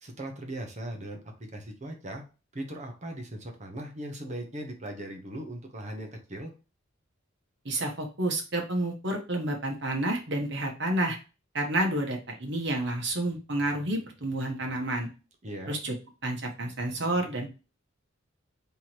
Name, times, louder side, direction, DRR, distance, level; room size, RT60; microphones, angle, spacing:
voice 1, 0.0-1.2 1.5-2.2 2.5-6.5 15.4-15.8, right 1 dB, 35° right, 3 dB, 0.9 m, -38 dB
voice 2, 7.6-11.2 11.5-15.1 15.7-15.9 16.2-17.5, right 1 dB, 60° right, 1 dB, 1.3 m, -30 dB
3.5 x 3.0 x 4.4 m, 0.31 s
head